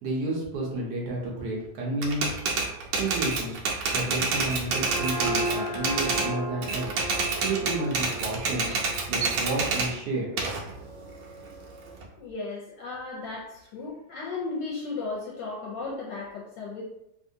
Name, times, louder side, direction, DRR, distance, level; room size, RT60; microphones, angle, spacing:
voice 1, 0.0-2.4 3.0-6.9 7.4-8.8 9.1-10.3, right 2 dB, 65° right, -2 dB, 1.2 m, -31 dB
Typewriter, 2.0-6.3 6.6-9.9 10.4-12.0, right 4 dB, 80° right, 1.4 m, -28 dB
sound 1, 4.6-9.8, right 2 dB, 15° left, 0.3 m, -35 dB
voice 2, 12.2-16.8, left 3 dB, 70° left, -3 dB, 1.1 m, -35 dB
3.5 x 2.6 x 2.7 m, 0.84 s
omnidirectional pair, 2.2 m